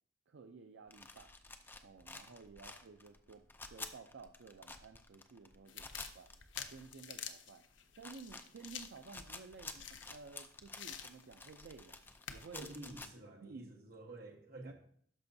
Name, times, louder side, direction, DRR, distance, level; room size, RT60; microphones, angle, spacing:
voice 1, 0.3-1.3 1.8-3.4 3.7-6.3 6.7-7.6 8.0-12.0 12.3-12.7 13.4-13.8 14.6-14.7, right 4 dB, 75° right, 6 dB, 0.4 m, -54 dB
sound 1, 0.9-7.1 7.5-7.6 7.9-13.1, left 3 dB, 10° left, 0.4 m, -51 dB
sound 2, 5.7-10.4 10.8-11.5 11.9-12.5, left 8 dB, 85° left, 0.6 m, -49 dB
voice 2, 12.5-14.7, right 2 dB, 55° right, 2 dB, 1.2 m, -50 dB
12.5 x 5.3 x 2.7 m, 0.62 s
head